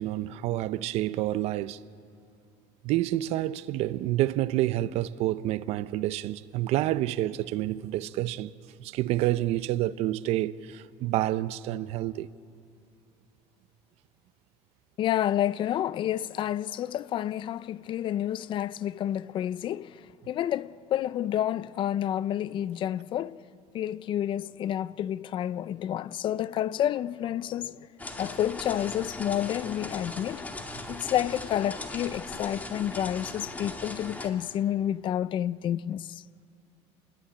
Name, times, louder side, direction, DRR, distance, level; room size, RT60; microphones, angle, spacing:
voice 1, 0.0-1.8 2.8-8.5 8.8-12.3 30.8-31.0, right 15 dB, 60° right, 0.7 m, -28 dB
voice 2, 15.0-23.4 23.7-27.9 28.2-30.5 30.9-36.2, left 11 dB, 45° left, 0.5 m, -29 dB
sound 1, 28.0-34.3, left 2 dB, 15° left, 2.3 m, -39 dB
28.5 x 21.5 x 8.8 m
cardioid pair, 140°, 12 cm